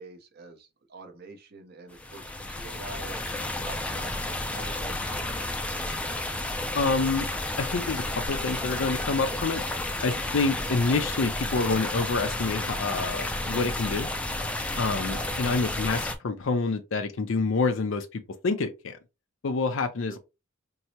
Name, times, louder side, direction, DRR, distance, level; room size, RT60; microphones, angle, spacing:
voice 1, 0.0-5.4 15.1-15.5 20.1-20.2, right 3 dB, 50° right, 0.7 m, -46 dB
sound 1, 1.9-16.2, left 2 dB, 5° left, 0.3 m, -32 dB
voice 2, 6.7-7.3 7.6-9.6 10.0-14.1 14.7-18.9 19.4-20.2, left 3 dB, 70° left, 0.5 m, -27 dB
4.6 x 2.0 x 2.8 m
head